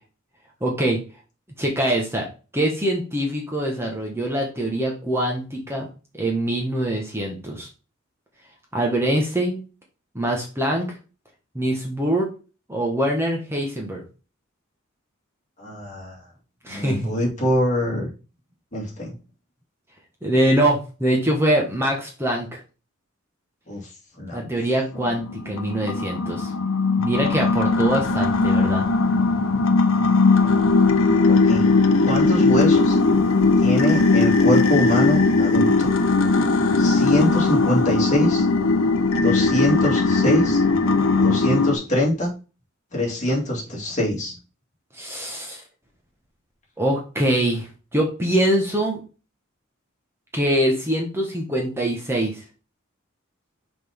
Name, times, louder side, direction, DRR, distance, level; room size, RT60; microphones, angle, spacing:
voice 1, 0.6-1.0 1.6-2.2 2.5-5.9 6.1-7.7 8.7-9.6 10.1-10.9 11.5-12.3 12.7-14.0 16.6-17.1 20.2-22.6 24.3-26.5 27.0-28.9 44.9-45.6 46.8-49.0 50.3-52.4, right 1 dB, 10° right, 0 dB, 1.3 m, -23 dB
voice 2, 15.6-16.2 16.7-18.1 18.7-19.2 23.7-23.9 24.2-24.5 30.4-30.5 31.3-31.7 32.0-33.0 33.6-35.9 36.8-38.5 39.1-40.6 41.2-42.3 42.9-44.4, left 1 dB, 35° left, -3 dB, 2.4 m, -24 dB
sound 1, 25.0-41.7, left 3 dB, 80° left, 0.8 m, -19 dB
5.9 x 5.1 x 3.5 m, 0.32 s
head